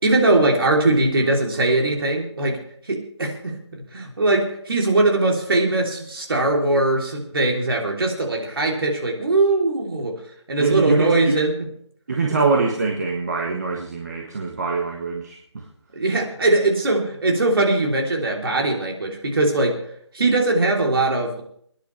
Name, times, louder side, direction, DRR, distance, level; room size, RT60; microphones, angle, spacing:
voice 1, 0.0-2.6 2.9-10.1 10.5-11.5 15.9-19.8 20.1-21.4, right 2 dB, 50° right, 0 dB, 3.2 m, -21 dB
voice 2, 10.6-11.4 12.1-15.7, right 4 dB, 35° right, 1 dB, 1.4 m, -23 dB
23.5 x 10.5 x 3.3 m, 0.64 s
figure-of-eight pair, 165°, 15 cm